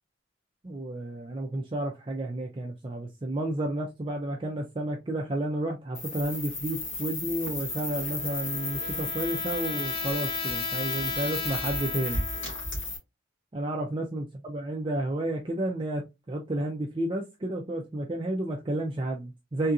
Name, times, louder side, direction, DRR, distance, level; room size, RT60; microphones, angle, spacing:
voice 1, 0.6-12.3 13.5-19.7, right 1 dB, 25° right, 0.4 m, -31 dB
sound 1, 5.9-13.0, left 3 dB, 75° left, 1.9 m, -33 dB
Trumpet, 7.7-12.8, left 5 dB, 30° left, 0.6 m, -37 dB
3.6 x 2.7 x 2.3 m
head